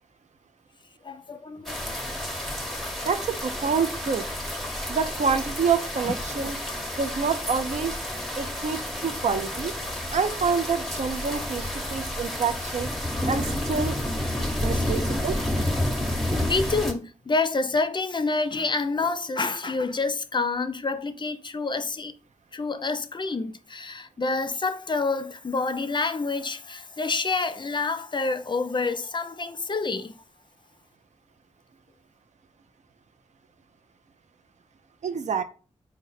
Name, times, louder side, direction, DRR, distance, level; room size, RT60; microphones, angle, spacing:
voice 1, 1.0-2.1 6.1-6.2 14.6-15.0 16.5-22.1 22.5-30.2, left 3 dB, 40° left, 0.4 m, -28 dB
sound 1, 1.7-16.9, left 1 dB, ahead, 0.8 m, -30 dB
voice 2, 3.0-4.3 4.9-6.6 7.0-8.0 8.4-9.7 10.1-12.9 13.2-14.0 14.6-15.4 35.0-35.4, right 6 dB, 75° right, 0.4 m, -27 dB
3.8 x 2.1 x 4.1 m
cardioid pair, 55°, 12 cm